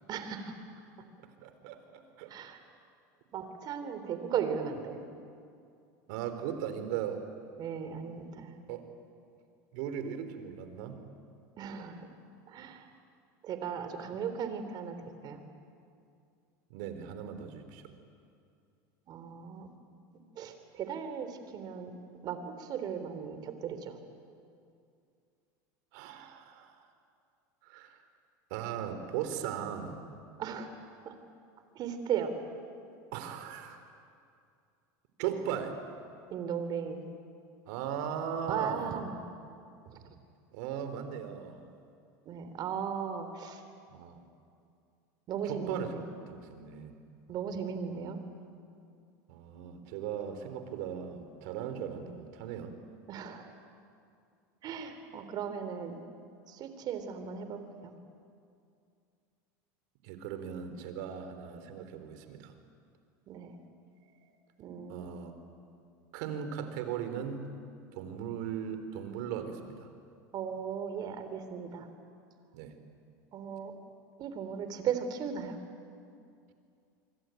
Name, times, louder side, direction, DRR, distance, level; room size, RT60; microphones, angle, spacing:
voice 1, 0.1-1.1 2.3-2.6 3.3-5.0 7.6-8.5 11.6-12.1 12.5-12.9 13.4-15.0 15.2-15.4 19.1-19.7 20.4-22.0 22.2-24.0 30.4-30.8 31.0-31.2 31.7-32.4 36.3-37.1 38.5-39.2 39.9-40.0 42.3-43.6 45.3-46.1 47.3-48.2 53.1-53.5 54.6-56.0 56.5-57.9 63.3-63.6 64.6-65.1 70.3-71.9 73.3-73.7 74.2-75.6, right 7 dB, 45° right, 9 dB, 3.6 m, -37 dB
voice 2, 1.4-2.3 6.1-7.2 8.7-8.9 9.7-11.0 16.7-17.8 25.9-26.8 27.6-28.0 28.5-30.0 33.1-33.8 35.2-35.8 37.7-39.0 40.5-41.6 43.9-44.2 45.4-45.9 46.2-47.0 49.3-52.7 60.0-62.5 64.9-65.3 66.1-67.5 67.9-69.9 72.5-72.8, right 8 dB, 70° right, 9 dB, 3.6 m, -38 dB
26.0 x 24.5 x 9.2 m, 2.4 s
supercardioid pair, 115°, 10 cm